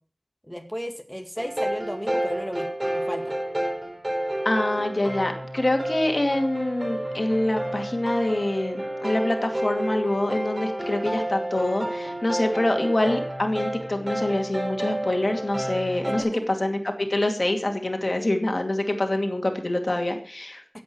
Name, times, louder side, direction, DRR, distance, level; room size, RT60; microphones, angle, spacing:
voice 1, 0.5-2.7 2.9-3.3 16.1-16.5, equal, 5° left, 5 dB, 2.1 m, -34 dB
sound 1, 1.4-16.2, right 1 dB, 45° right, 4.8 m, -30 dB
voice 2, 4.4-20.6, left 1 dB, 60° left, 4 dB, 2.3 m, -25 dB
15.5 x 8.2 x 6.2 m, 0.43 s
wide cardioid pair, 40°, 0 cm